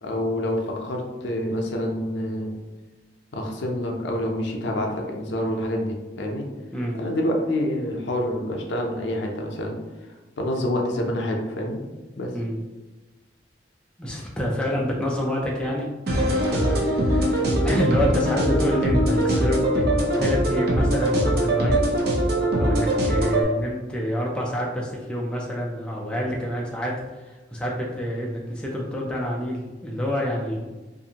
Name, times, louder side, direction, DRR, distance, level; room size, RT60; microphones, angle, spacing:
voice 1, 0.0-2.5 3.3-6.5 7.0-9.8 10.4-11.8 12.2-12.3, left 1 dB, 70° left, 1 dB, 0.5 m, -27 dB
voice 2, 14.0-19.9 20.2-21.9 22.6-30.7, equal, 5° left, -3 dB, 0.3 m, -27 dB
sound 1, 16.1-23.4, right 1 dB, 55° right, 0.5 m, -22 dB
2.5 x 2.5 x 2.7 m, 1.2 s
head